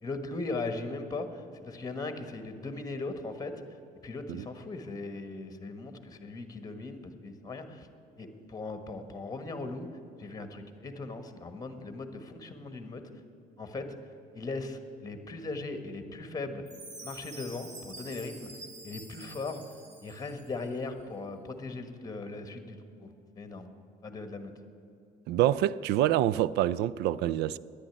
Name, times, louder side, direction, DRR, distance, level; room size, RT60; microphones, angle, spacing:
voice 1, 0.0-3.5 4.0-7.9 8.2-9.9 10.2-13.0 13.6-13.9 14.3-16.6 17.0-18.5 18.8-19.6 20.0-23.7 24.0-24.5, left 3 dB, 20° left, 1.4 m, -38 dB
Chime, 16.7-20.7, right 2 dB, 45° right, 2.6 m, -47 dB
voice 2, 25.3-27.6, right 13 dB, 80° right, 0.4 m, -26 dB
10.0 x 10.0 x 9.9 m
cardioid pair, 110°, 17 cm